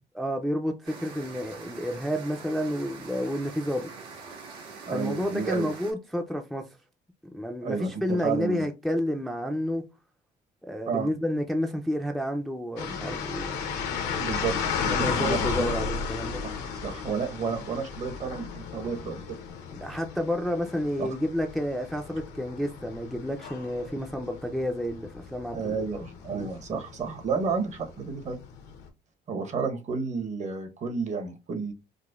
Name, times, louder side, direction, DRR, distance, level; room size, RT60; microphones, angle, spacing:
voice 1, 0.1-3.9 4.9-6.7 7.3-9.9 10.6-13.7 14.9-16.4 19.7-26.0 26.3-26.5, equal, ahead, 0.4 m, -30 dB
sound 1, 0.8-5.9, right 4 dB, 85° right, 1.6 m, -44 dB
voice 2, 4.9-5.7 7.6-8.7 10.9-11.1 14.2-14.6 14.8-15.5 16.8-19.4 21.0-21.1 25.5-28.4 29.3-31.7, right 5 dB, 45° right, 0.9 m, -31 dB
sound 2, 12.8-28.9, left 6 dB, 85° left, 0.8 m, -34 dB
4.9 x 2.1 x 2.3 m
cardioid pair, 110°, 17 cm